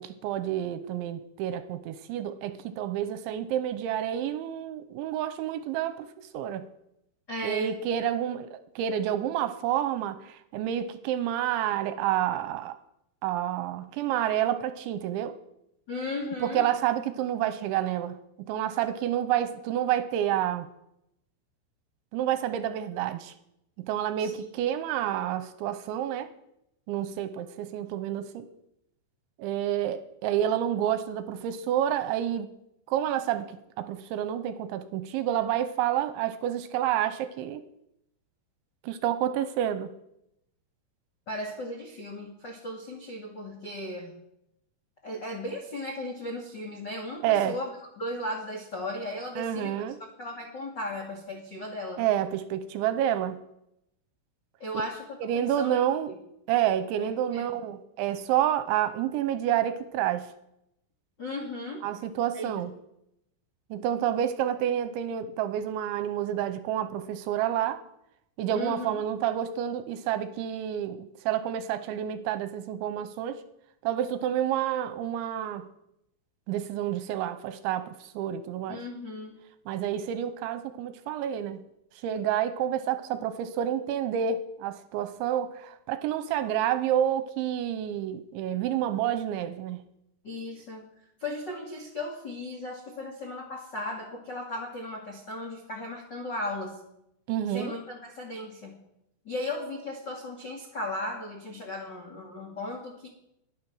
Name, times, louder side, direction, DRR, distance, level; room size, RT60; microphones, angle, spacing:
voice 1, 0.0-6.1 6.3-6.7 7.4-12.8 13.2-15.4 16.4-18.2 18.5-20.7 22.1-23.3 23.8-26.3 26.9-28.5 29.4-32.5 32.9-37.6 38.8-39.9 47.2-47.6 49.4-50.0 52.0-53.4 55.2-56.1 56.5-60.3 61.8-62.7 63.7-67.8 68.4-73.4 73.8-75.7 76.5-78.8 79.7-81.6 82.0-89.8 97.3-97.8, right 10 dB, 80° right, 11 dB, 2.9 m, -29 dB
voice 2, 7.3-7.7 15.9-16.7 24.2-24.5 41.3-44.1 45.0-49.8 50.2-52.0 54.6-55.0 55.3-55.8 57.0-57.6 61.2-61.8 62.3-62.5 68.5-69.0 78.7-79.3 90.2-90.8 91.2-96.8 97.5-98.8 99.2-103.1, left 1 dB, 75° left, 0 dB, 1.0 m, -36 dB
21.5 x 9.3 x 6.4 m, 0.82 s
omnidirectional pair, 5.7 m